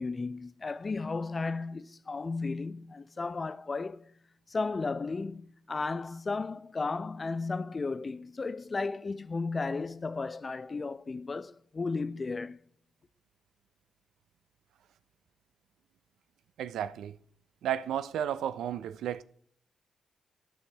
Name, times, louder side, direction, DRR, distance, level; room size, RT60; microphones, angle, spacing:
voice 1, 0.0-4.1 4.5-12.6, left 3 dB, 40° left, 0.5 m, -34 dB
voice 2, 16.6-17.2 17.6-19.2, right 10 dB, 80° right, 0.3 m, -33 dB
12.0 x 5.5 x 3.3 m
supercardioid pair, 45°, 0 cm